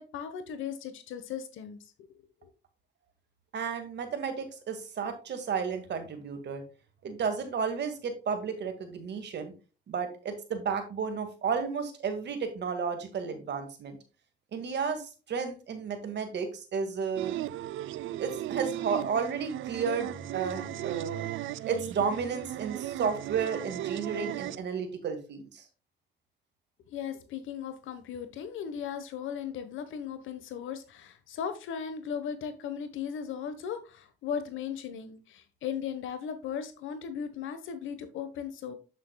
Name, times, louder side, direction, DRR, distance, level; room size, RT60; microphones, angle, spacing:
voice 1, 0.0-1.8 2.4-2.5 26.9-38.7, left 7 dB, 80° left, 10 dB, 1.2 m, -37 dB
voice 2, 3.5-6.6 7.0-9.5 9.9-14.0 14.5-17.3 18.2-25.6, right 6 dB, 60° right, 7 dB, 1.9 m, -32 dB
sound 1, 17.2-24.6, right 13 dB, 80° right, 0.5 m, -36 dB
8.5 x 7.3 x 2.3 m, 0.33 s
cardioid pair, 90°, 20 cm